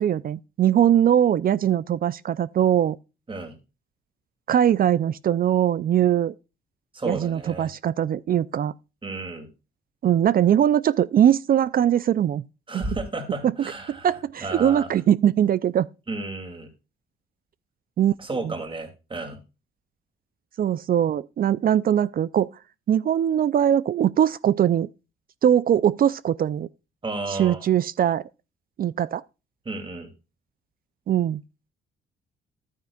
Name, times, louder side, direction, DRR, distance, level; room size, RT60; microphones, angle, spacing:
voice 1, 0.0-3.0 4.5-6.3 7.1-8.7 10.0-12.5 13.4-13.5 13.9-15.9 18.0-18.1 18.4-18.5 20.6-22.5 22.9-24.9 25.4-26.7 27.3-28.2 28.8-29.2 31.1-31.4, right 10 dB, 45° right, 0.4 m, -21 dB
voice 2, 6.9-7.7 9.0-9.5 12.7-14.9 16.1-16.7 18.2-19.4 27.0-27.6 29.6-30.1, right 2 dB, 25° right, 2.6 m, -32 dB
12.0 x 9.4 x 2.4 m
cardioid pair, 90°, 20 cm